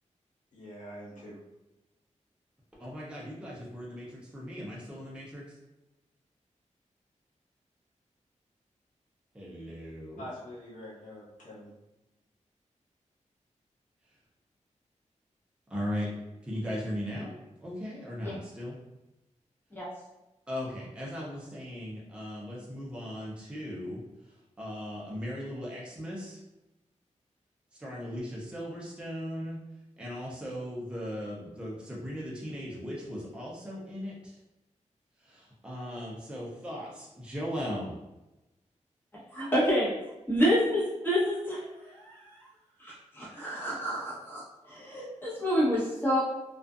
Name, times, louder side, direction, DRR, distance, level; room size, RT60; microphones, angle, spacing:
voice 1, 0.5-1.3 10.2-11.7, equal, 80° left, -7 dB, 1.1 m, -44 dB
voice 2, 2.8-5.6 9.3-10.2 15.7-16.1 16.4-17.3 17.6-18.8 20.5-24.0 24.3-26.4 27.7-29.6 30.0-34.4 35.2-37.9, equal, 10° right, -5 dB, 0.6 m, -38 dB
voice 3, 39.3-39.9 40.3-42.5 42.8-46.2, equal, 15° left, -7 dB, 1.1 m, -29 dB
2.4 x 2.4 x 2.4 m, 0.98 s
wide cardioid pair, 95°, 13 cm